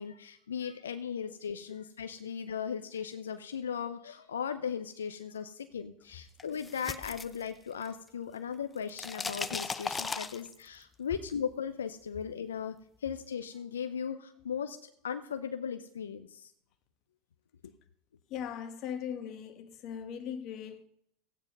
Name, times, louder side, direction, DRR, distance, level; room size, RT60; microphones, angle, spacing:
voice 1, 0.0-12.7 13.0-14.8 15.0-16.5, left 7 dB, 90° left, 0.6 m, -37 dB
sound 1, 6.4-8.1 8.4-10.8, left 4 dB, 20° left, 0.6 m, -37 dB
voice 2, 18.3-20.9, left 8 dB, 50° left, 1.4 m, -39 dB
14.0 x 9.2 x 5.3 m
hypercardioid pair, 95°, 0 cm